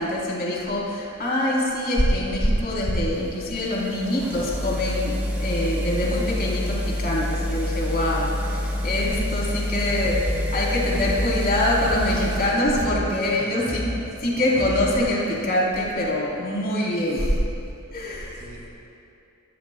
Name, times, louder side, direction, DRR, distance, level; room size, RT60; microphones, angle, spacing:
voice 1, 0.0-13.9 14.2-17.4 17.9-18.4, left 1 dB, 45° left, -5 dB, 3.8 m, -24 dB
sound 1, 2.3-12.5, left 1 dB, 10° right, 3.9 m, -28 dB
sound 2, 10.0-11.3 11.8-13.1 13.7-15.2, equal, 35° right, 2.5 m, -31 dB
voice 2, 13.4-13.9 18.3-18.7, right 1 dB, 70° right, -3 dB, 2.7 m, -45 dB
26.0 x 18.5 x 2.3 m, 2.6 s
head